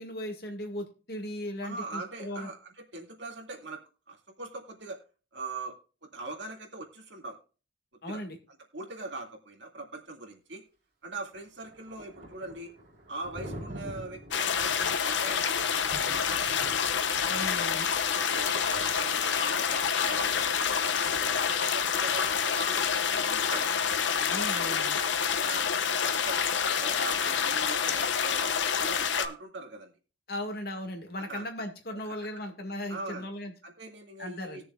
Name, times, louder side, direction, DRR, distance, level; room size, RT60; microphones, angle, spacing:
voice 1, 0.0-2.5 8.0-8.4 17.3-17.9 24.2-25.0 30.3-33.5 34.2-34.6, left 1 dB, 55° left, 4 dB, 2.0 m, -37 dB
voice 2, 1.6-3.8 4.1-5.0 5.3-5.7 6.0-7.4 8.1-8.2 8.7-10.6 11.0-12.7 13.1-16.0 16.3-16.7 18.1-21.2 21.5-23.8 25.4-26.5 26.7-29.9 31.2-31.4 31.9-32.3 32.9-33.3 33.6-34.6, right 3 dB, 80° right, 2 dB, 2.3 m, -41 dB
Thunder, 11.2-23.0, right 1 dB, 55° right, 3.6 m, -48 dB
sound 1, 14.3-29.3, left 7 dB, 80° left, 0.8 m, -28 dB
20.0 x 6.9 x 2.4 m, 0.35 s
head